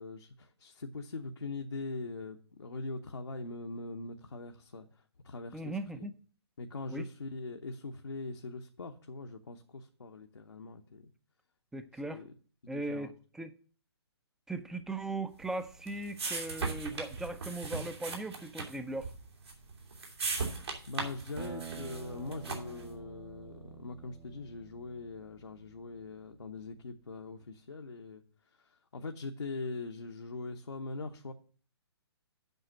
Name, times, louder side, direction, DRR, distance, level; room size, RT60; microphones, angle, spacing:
voice 1, 0.0-4.9 5.2-6.1 6.6-11.1 12.0-12.3 12.6-13.1 20.9-28.2 28.5-31.3, left 3 dB, 75° left, 3 dB, 1.0 m, -42 dB
voice 2, 5.5-6.2 6.9-7.0 11.7-12.2 12.7-13.5 14.5-19.1, right 2 dB, 5° right, 10 dB, 0.5 m, -38 dB
sound 1, 15.4-22.9, right 4 dB, 70° right, 2.8 m, -39 dB
Acoustic guitar, 21.4-26.2, right 7 dB, 20° right, 1.1 m, -48 dB
8.0 x 5.7 x 7.5 m, 0.41 s
figure-of-eight pair, 130°, 14 cm